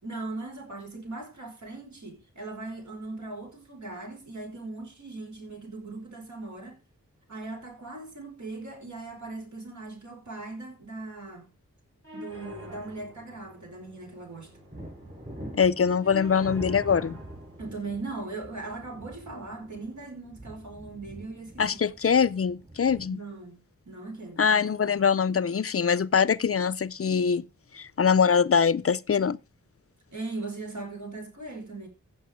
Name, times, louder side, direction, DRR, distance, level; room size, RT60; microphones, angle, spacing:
voice 1, 0.0-6.8 7.3-11.5 12.1-14.5 17.6-21.6 23.1-23.6 23.9-24.5 30.1-31.9, right 3 dB, 65° right, 5.1 m, -39 dB
sound 1, 12.0-20.0, equal, 45° right, 6.6 m, -48 dB
sound 2, 14.3-23.1, right 1 dB, 30° right, 7.4 m, -45 dB
voice 2, 15.5-17.2 21.6-23.2 24.4-27.4 27.7-29.4, left 6 dB, 50° left, 0.5 m, -23 dB
15.0 x 6.7 x 5.1 m
wide cardioid pair, 105°, 31 cm